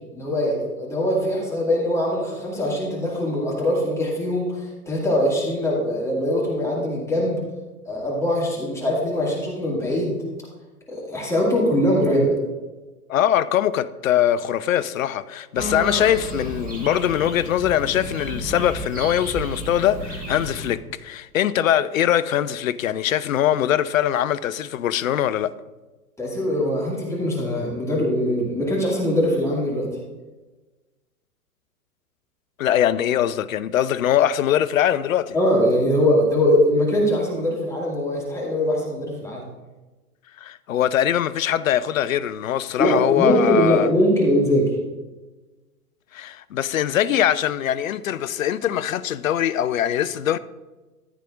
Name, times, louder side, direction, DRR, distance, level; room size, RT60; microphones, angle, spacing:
voice 1, 0.1-7.4 7.9-10.2 10.9-12.4 26.2-29.9 35.3-39.4 42.8-44.7, equal, 5° left, 2.1 m, -22 dB
voice 2, 13.1-25.5 32.6-35.4 40.4-43.9 46.1-50.4, left 10 dB, 60° left, 0.6 m, -22 dB
sound 1, 15.5-20.7, equal, 20° right, 1.6 m, -32 dB
14.5 x 8.3 x 2.5 m
figure-of-eight pair, 110°, 46 cm